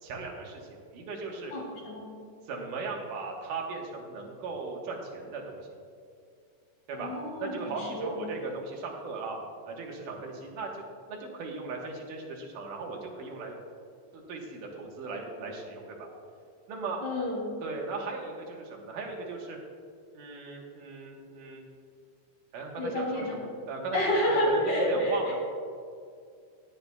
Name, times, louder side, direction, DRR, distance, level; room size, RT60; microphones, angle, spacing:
voice 1, 0.0-1.5 2.4-5.6 6.9-7.1 7.4-9.4 9.7-13.5 14.1-16.1 16.7-17.0 17.6-19.6 20.1-21.6 22.5-24.0 24.3-25.3, right 4 dB, 80° right, 0 dB, 2.8 m, -37 dB
voice 2, 1.5-2.1 6.9-8.3 17.0-17.5 22.8-23.4 23.9-25.3, left 1 dB, 60° left, -4 dB, 4.2 m, -29 dB
19.0 x 8.8 x 2.3 m, 2.3 s
omnidirectional pair, 3.7 m